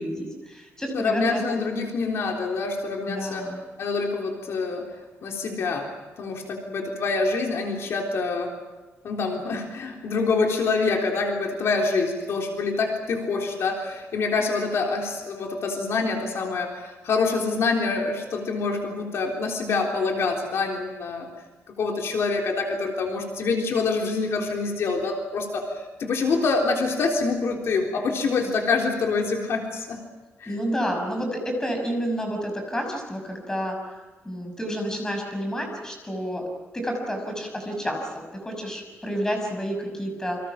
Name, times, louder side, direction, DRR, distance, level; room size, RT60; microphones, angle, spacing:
voice 1, 0.0-1.6 3.1-3.6 30.5-33.8 34.2-36.4 36.7-40.4, equal, 10° left, 3 dB, 6.1 m, -30 dB
voice 2, 0.9-3.5 3.8-4.9 5.2-5.9 6.2-8.5 9.0-21.3 21.8-30.0 30.4-30.5, left 4 dB, 65° left, 1 dB, 3.7 m, -26 dB
29.0 x 25.5 x 5.9 m, 1.2 s
wide cardioid pair, 165°, 5 cm